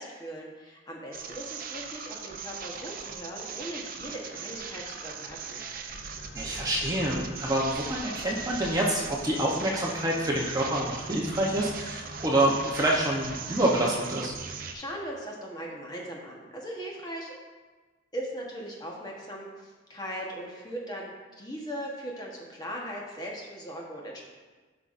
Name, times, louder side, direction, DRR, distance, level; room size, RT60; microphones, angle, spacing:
voice 1, 0.0-5.6 14.7-17.3 18.1-24.2, equal, 20° left, -2 dB, 1.1 m, -39 dB
sound 1, 1.1-14.8, right 6 dB, 50° right, 0.6 m, -40 dB
sound 2, 5.9-14.7, equal, 45° left, 0.6 m, -45 dB
voice 2, 6.3-14.3, right 1 dB, 20° right, -3 dB, 0.8 m, -27 dB
12.0 x 5.5 x 2.5 m, 1.3 s
head